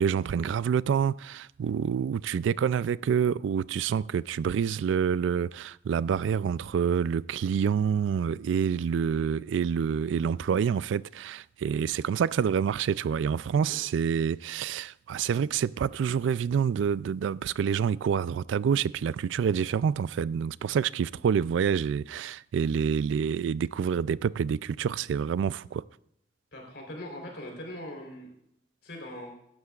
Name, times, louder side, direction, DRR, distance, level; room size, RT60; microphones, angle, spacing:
voice 1, 0.0-25.8, right 7 dB, 85° right, 0.3 m, -27 dB
voice 2, 26.5-28.3 28.8-29.3, left 1 dB, 65° left, 3.7 m, -41 dB
16.0 x 12.5 x 2.4 m
head